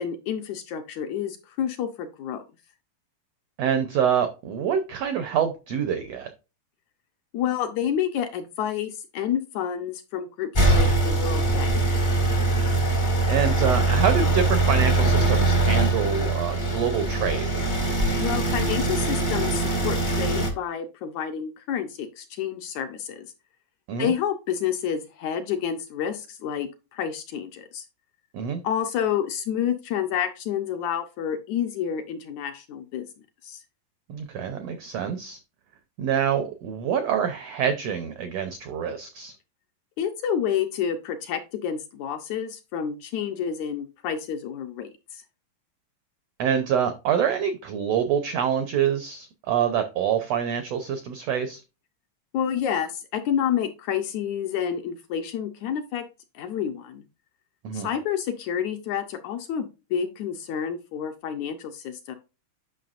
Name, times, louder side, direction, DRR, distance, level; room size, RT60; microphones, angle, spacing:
voice 1, 0.0-2.4 7.3-11.7 18.2-23.3 24.0-27.9 28.6-33.1 33.4-33.6 40.0-45.2 52.3-56.1 56.4-57.0 57.7-62.1, left 8 dB, 75° left, 6 dB, 1.8 m, -29 dB
voice 2, 3.6-6.3 13.3-17.5 23.9-24.1 28.3-28.6 34.1-35.4 36.0-39.3 46.4-51.6 57.6-57.9, right 8 dB, 85° right, 9 dB, 1.4 m, -26 dB
sound 1, 10.5-20.5, right 2 dB, 45° left, 0.6 m, -22 dB
9.1 x 6.0 x 2.5 m, 0.28 s
omnidirectional pair, 3.9 m